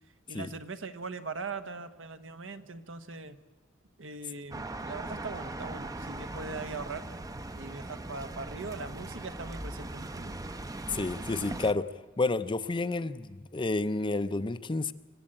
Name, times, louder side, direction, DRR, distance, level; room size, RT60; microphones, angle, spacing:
voice 1, 0.3-3.4 4.0-7.0 7.5-10.3, right 3 dB, 75° right, 8 dB, 1.2 m, -40 dB
sound 1, 4.5-11.7, right 2 dB, 20° right, 0.7 m, -40 dB
voice 2, 10.9-11.9 12.2-14.9, left 3 dB, 25° left, 12 dB, 0.6 m, -30 dB
25.0 x 15.0 x 8.8 m, 1.3 s
head